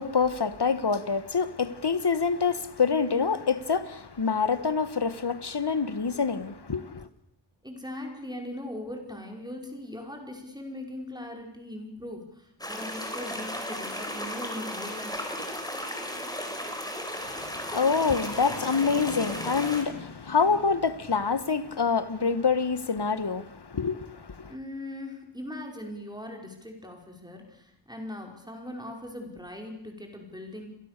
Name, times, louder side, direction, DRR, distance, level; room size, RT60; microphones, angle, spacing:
voice 1, 0.0-7.1 17.2-24.5, left 5 dB, 60° left, 1.6 m, -26 dB
voice 2, 7.6-15.5 24.5-30.7, left 1 dB, 10° right, 5.3 m, -40 dB
sound 1, 12.6-19.8, equal, 10° left, 5.1 m, -35 dB
29.0 x 23.0 x 6.8 m
wide cardioid pair, 60°, 46 cm